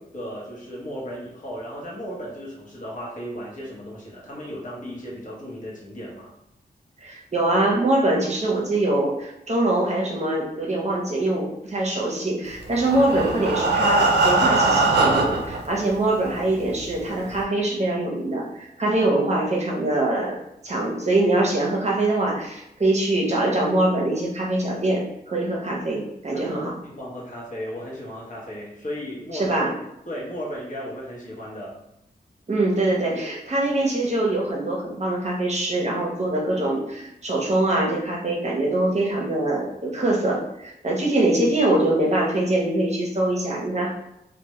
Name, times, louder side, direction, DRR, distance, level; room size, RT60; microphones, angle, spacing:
voice 1, 0.1-6.3 26.3-29.6 30.1-31.8, equal, 50° left, -5 dB, 0.8 m, -35 dB
voice 2, 7.0-20.4 20.6-26.7 29.3-29.7 32.5-43.9, right 2 dB, 40° right, -2 dB, 0.6 m, -23 dB
Breathing, 12.6-15.6 16.3-16.4 16.8-16.9 17.3-17.4, right 3 dB, 85° right, 0.4 m, -21 dB
2.1 x 2.1 x 2.9 m, 0.82 s
wide cardioid pair, 75°, 17 cm